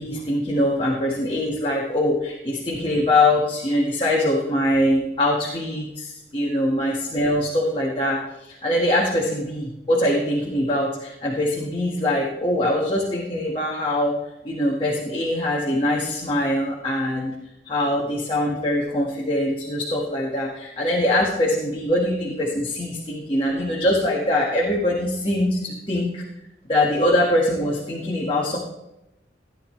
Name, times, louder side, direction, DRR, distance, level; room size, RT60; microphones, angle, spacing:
voice 1, 0.0-14.2 14.4-17.3 17.6-26.2 26.7-28.6, left 1 dB, 30° left, -4 dB, 1.7 m, -23 dB
15.5 x 10.5 x 3.3 m, 0.90 s
head